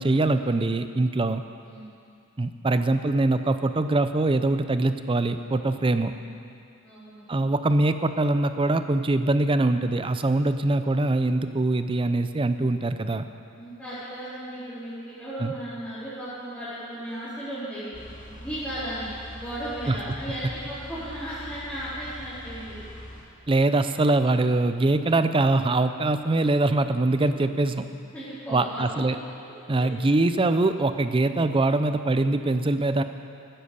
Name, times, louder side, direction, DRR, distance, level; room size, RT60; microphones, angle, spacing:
voice 1, 0.0-1.4 2.4-6.1 7.3-13.2 15.4-15.5 19.9-20.0 23.5-27.9 28.5-29.2 29.7-33.0, right 2 dB, 25° right, 10 dB, 0.5 m, -23 dB
voice 2, 6.8-7.2 13.5-22.8 28.1-29.1 29.8-29.9, right 1 dB, 10° left, -15 dB, 3.7 m, -35 dB
sound 1, 17.9-23.2, equal, 35° left, 2.4 m, -43 dB
15.0 x 10.0 x 6.7 m, 2.5 s
head